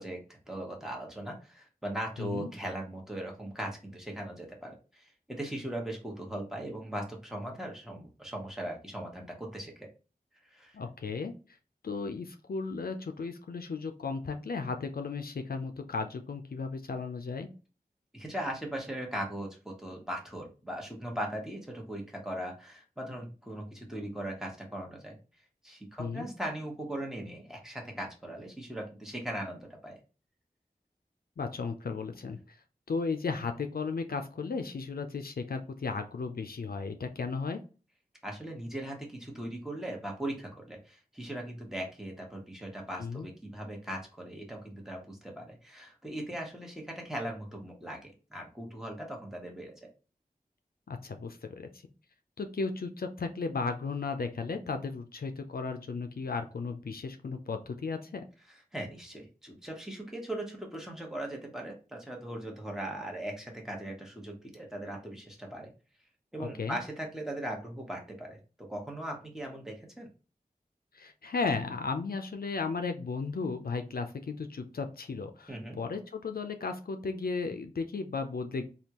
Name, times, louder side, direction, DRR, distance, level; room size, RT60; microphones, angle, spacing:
voice 1, 0.0-9.9 10.5-10.8 18.1-25.2 25.6-30.0 38.2-49.7 58.7-65.7 66.3-70.1 75.5-75.8, right 1 dB, 5° right, 0 dB, 1.1 m, -39 dB
voice 2, 2.2-2.5 10.7-11.3 11.8-17.5 26.0-26.3 31.4-32.6 32.9-37.6 43.0-43.3 50.9-51.7 52.4-58.2 66.4-66.8 70.9-78.6, left 4 dB, 70° left, 6 dB, 0.4 m, -35 dB
3.5 x 2.3 x 2.9 m, 0.33 s
wide cardioid pair, 50°, 16 cm